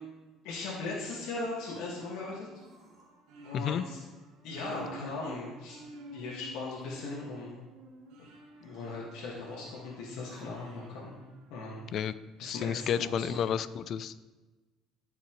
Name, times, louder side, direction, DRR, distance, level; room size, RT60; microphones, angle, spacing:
voice 1, 0.4-2.6 3.4-4.0 4.4-5.8 6.1-7.6 8.2-8.3 8.6-11.1 11.5-11.8 12.4-13.5, left 3 dB, 80° left, -5 dB, 1.7 m, -38 dB
sound 1, 1.8-1.9 2.5-3.2 3.6-3.9 4.5-5.2 6.5-7.3 8.5-9.1 10.1-10.9 11.6-12.1, right 1 dB, 15° right, 2.4 m, -55 dB
sound 2, 2.2-12.0, right 2 dB, 75° right, 1.4 m, -51 dB
voice 2, 12.4-14.2, left 8 dB, 50° left, 16 dB, 0.4 m, -31 dB
14.0 x 5.8 x 3.1 m, 1.2 s
cardioid pair, 130°, 0 cm